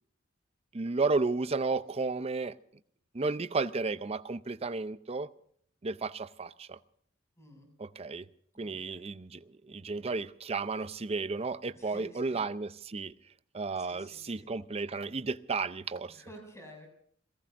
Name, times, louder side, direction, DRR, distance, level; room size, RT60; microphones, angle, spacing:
voice 1, 0.7-2.6 3.1-5.3 5.8-6.8 7.8-8.3 8.6-13.1 13.5-16.2, right 3 dB, 30° right, 13 dB, 0.6 m, -33 dB
voice 2, 7.4-7.7 8.5-9.1 11.7-12.4 13.8-14.5 16.1-16.9, equal, 15° left, 3 dB, 6.6 m, -52 dB
29.0 x 18.0 x 2.6 m, 0.63 s
head